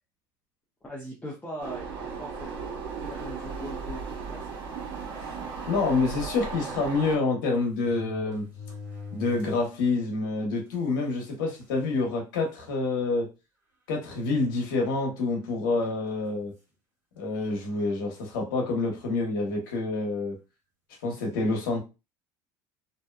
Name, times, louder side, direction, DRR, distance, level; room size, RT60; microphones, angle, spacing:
voice 1, 0.9-4.6, equal, 10° left, 0.6 m, -41 dB
sound 1, 1.6-7.2, right 5 dB, 55° right, 1.0 m, -36 dB
sound 2, 3.9-4.2 4.9-5.0 5.3-5.4 6.7-6.8 7.5-9.8 10.2-10.3 11.1-11.2 11.6-12.0 12.6-12.7 14.0-14.8 15.8-16.1, left 5 dB, 20° right, 1.4 m, -44 dB
voice 2, 5.7-8.4 9.1-13.3 13.9-16.5 17.2-20.4 21.0-21.8, left 3 dB, 85° left, 0.9 m, -27 dB
2.6 x 2.2 x 2.2 m
supercardioid pair, 100°, 10 cm